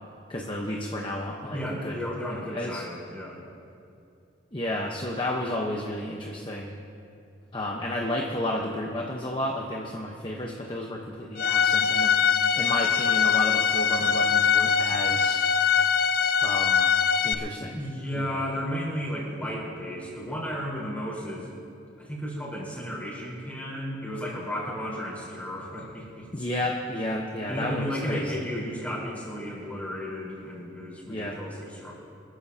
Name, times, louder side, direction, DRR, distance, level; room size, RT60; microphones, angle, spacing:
voice 1, 0.3-1.6 1.8-2.0 2.5-2.8 4.5-6.8 7.5-12.2 12.5-15.4 16.4-16.9 17.2-17.8 18.2-18.4 26.3-28.4 31.1-31.4, left 1 dB, 25° left, -1 dB, 1.0 m, -32 dB
voice 2, 1.5-3.5 17.7-21.5 22.0-26.4 27.5-31.9, equal, 10° left, -6 dB, 4.3 m, -34 dB
Bowed string instrument, 11.4-17.3, left 7 dB, 55° left, 0.5 m, -22 dB
25.0 x 14.0 x 2.8 m, 2.5 s
head